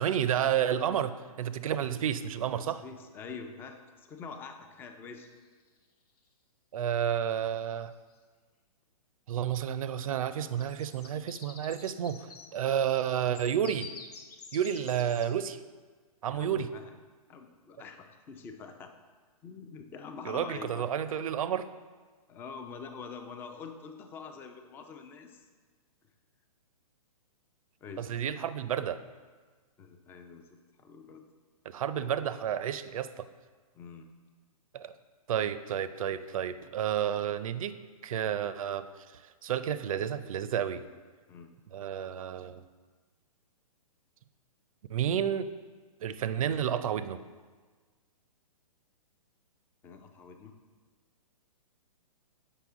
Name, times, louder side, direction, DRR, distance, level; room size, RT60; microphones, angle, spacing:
voice 1, 0.0-2.8 6.7-7.9 9.3-13.9 14.5-15.6 16.2-16.7 20.3-21.7 28.0-29.0 31.7-33.3 34.7-34.9 35.3-37.8 38.0-38.9 39.1-40.8 41.7-42.6 44.9-45.5 46.0-47.2, right 9 dB, 65° right, 13 dB, 0.5 m, -31 dB
voice 2, 2.6-5.3 16.3-16.9 17.3-18.9 19.4-20.9 22.3-25.4 27.8-28.1 29.8-31.2 31.9-32.2 33.7-34.1 41.3-41.5 49.8-50.6, left 5 dB, 10° left, 6 dB, 0.4 m, -45 dB
sound 1, 5.2-5.8 7.4-7.5 7.8-8.1 10.4-15.3, left 5 dB, 85° left, 1.0 m, -49 dB
8.1 x 5.6 x 3.6 m, 1.4 s
hypercardioid pair, 145°, 19 cm